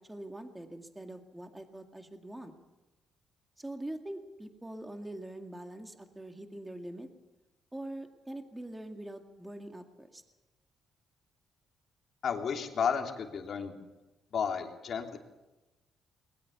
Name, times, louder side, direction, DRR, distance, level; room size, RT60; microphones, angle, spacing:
voice 1, 0.0-2.5 3.6-7.1 7.7-10.2, right 1 dB, 10° right, 5 dB, 2.1 m, -43 dB
voice 2, 12.2-13.8 14.3-15.2, left 7 dB, 60° left, 3 dB, 3.0 m, -32 dB
21.0 x 20.0 x 7.1 m, 1.1 s
cardioid pair, 90°, 0 cm